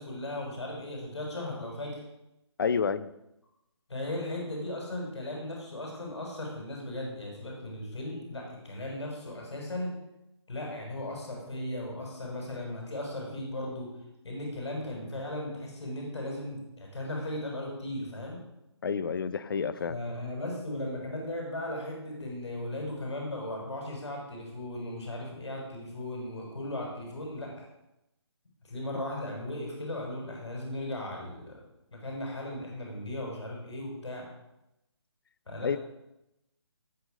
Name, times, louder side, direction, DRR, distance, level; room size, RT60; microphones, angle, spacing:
voice 1, 0.0-2.0 3.9-10.0 10.5-13.9 14.2-18.4 19.9-27.7 28.6-31.6 31.9-34.3 35.5-35.8, left 1 dB, 75° left, -1 dB, 6.0 m, -37 dB
voice 2, 2.6-3.1 18.8-20.0 35.6-35.8, left 6 dB, 50° left, 15 dB, 0.8 m, -29 dB
18.0 x 6.0 x 6.6 m, 0.88 s
figure-of-eight pair, 160°, 15 cm